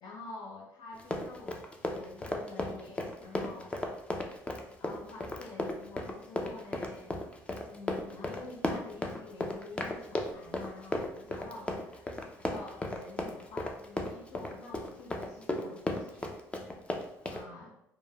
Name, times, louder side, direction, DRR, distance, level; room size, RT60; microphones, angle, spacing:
voice 1, 0.0-4.0 4.8-7.2 7.6-16.3 17.2-17.7, left 3 dB, 65° left, -2 dB, 0.5 m, -48 dB
Run, 0.9-17.4, left 1 dB, 15° left, 0.4 m, -35 dB
3.0 x 2.1 x 2.2 m, 0.79 s
supercardioid pair, 85°, 7 cm